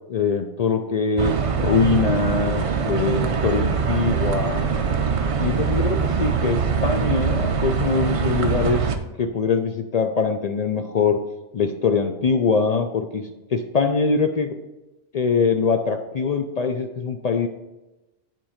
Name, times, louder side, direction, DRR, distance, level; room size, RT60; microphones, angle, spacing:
voice 1, 0.1-4.7 5.4-11.2 11.5-14.5 15.1-17.5, left 5 dB, 75° left, 6 dB, 0.3 m, -23 dB
sound 1, 1.2-9.0, right 6 dB, 55° right, 0.3 m, -23 dB
8.8 x 4.5 x 5.0 m, 1.0 s
omnidirectional pair, 1.3 m